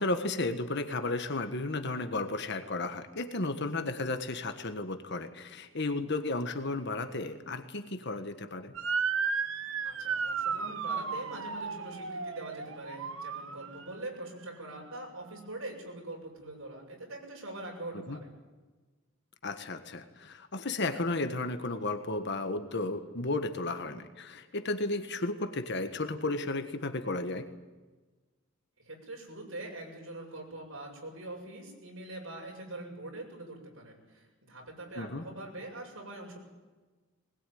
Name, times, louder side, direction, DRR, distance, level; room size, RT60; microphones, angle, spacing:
voice 1, 0.0-8.7 18.1-18.2 19.4-27.5 35.0-35.2, left 2 dB, 55° left, 8 dB, 1.5 m, -33 dB
Motor vehicle (road) / Siren, 8.7-14.0, right 5 dB, 70° right, 1.2 m, -34 dB
voice 2, 9.8-18.3 28.8-36.4, right 2 dB, 90° right, 0 dB, 7.8 m, -43 dB
21.0 x 20.5 x 9.4 m, 1.3 s
head